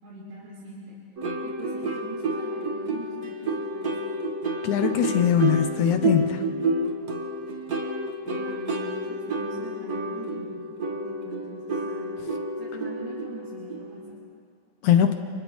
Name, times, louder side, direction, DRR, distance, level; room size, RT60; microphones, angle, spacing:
voice 1, 0.0-1.0 1.4-4.1 8.2-12.2 12.6-14.0, right 2 dB, 85° right, -10 dB, 6.3 m, -43 dB
sound 1, 1.2-14.1, right 2 dB, 55° right, 1.0 m, -30 dB
voice 2, 4.6-6.4 14.8-15.1, left 9 dB, 75° left, 7 dB, 1.9 m, -21 dB
30.0 x 29.5 x 3.2 m, 2.5 s
omnidirectional pair, 4.2 m